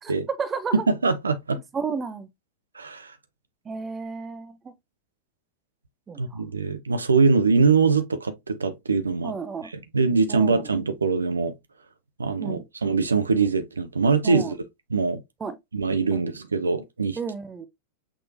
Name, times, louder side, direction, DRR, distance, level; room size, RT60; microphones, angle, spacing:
voice 1, 0.0-0.8 1.5-2.3 3.7-4.7 6.1-6.4 9.2-9.7 10.3-10.7 12.4-12.6 14.2-14.5 15.4-15.6 16.1-16.3 17.2-17.7, right 5 dB, 20° right, 0.6 m, -32 dB
voice 2, 0.7-1.6 2.7-3.1 6.2-9.3 9.6-11.5 12.2-14.6 14.9-15.2 15.7-17.2, right 4 dB, 75° right, 0.6 m, -23 dB
6.0 x 3.1 x 2.4 m
figure-of-eight pair, 90°, 0 cm